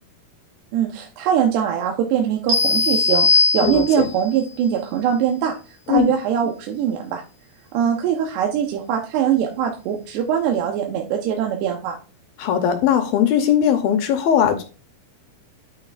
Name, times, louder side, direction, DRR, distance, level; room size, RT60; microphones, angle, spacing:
voice 1, 0.7-5.6 5.9-7.2 7.7-12.0, right 9 dB, 90° right, 2 dB, 3.1 m, -22 dB
sound 1, 2.5-4.2, left 4 dB, 60° right, 3.0 m, -19 dB
voice 2, 3.6-4.1 5.9-6.0 12.4-14.6, left 9 dB, 75° left, 7 dB, 2.4 m, -19 dB
9.4 x 8.9 x 2.5 m, 0.34 s
omnidirectional pair, 4.7 m